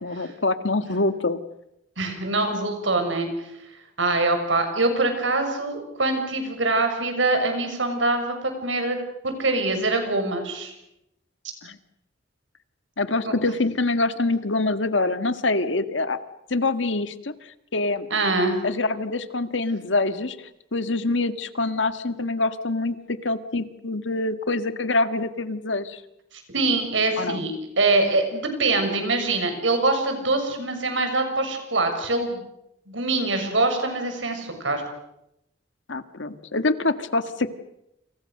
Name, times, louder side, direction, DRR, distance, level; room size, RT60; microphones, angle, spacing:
voice 1, 0.0-1.4 11.6-11.8 13.0-16.2 16.5-17.3 17.7-18.1 18.6-26.0 27.2-27.4 35.9-37.5, left 2 dB, 80° left, 10 dB, 1.7 m, -25 dB
voice 2, 2.0-3.3 4.0-8.3 8.6-9.0 9.2-10.7 13.2-13.3 18.1-18.6 26.5-32.4 32.9-34.8, right 2 dB, 85° right, 6 dB, 6.7 m, -24 dB
29.0 x 27.5 x 6.7 m, 0.84 s
head